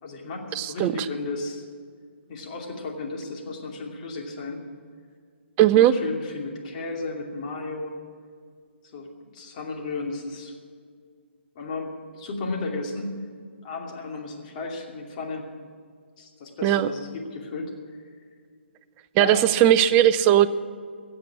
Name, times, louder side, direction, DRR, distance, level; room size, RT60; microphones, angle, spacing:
voice 1, 0.0-1.6 2.3-4.6 5.7-7.9 8.9-9.1 9.3-10.5 11.5-13.1 13.6-15.5 16.2-17.7 19.2-19.5, left 3 dB, 40° left, 1 dB, 2.7 m, -34 dB
voice 2, 0.6-0.9 5.6-5.9 16.6-16.9 19.2-20.5, right 12 dB, 25° right, 12 dB, 0.5 m, -18 dB
16.0 x 7.7 x 9.9 m, 2.1 s
hypercardioid pair, 145°, 7 cm